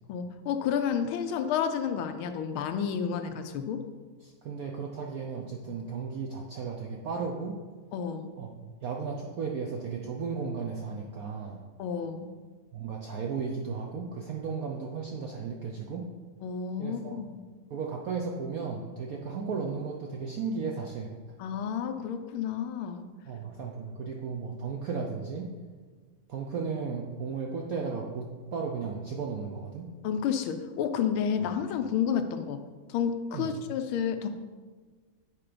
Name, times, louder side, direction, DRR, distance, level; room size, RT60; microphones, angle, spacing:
voice 1, 0.1-3.9 7.9-8.3 11.8-12.3 16.4-17.4 21.4-23.1 30.0-32.6 32.9-34.3, left 7 dB, 80° left, 8 dB, 1.4 m, -30 dB
voice 2, 4.2-7.6 8.4-11.7 12.7-16.1 16.8-17.2 17.7-21.1 23.3-25.5 26.3-29.9 33.3-33.5, right 5 dB, 75° right, 0 dB, 0.8 m, -35 dB
8.5 x 4.5 x 5.0 m, 1.4 s
omnidirectional pair, 2.3 m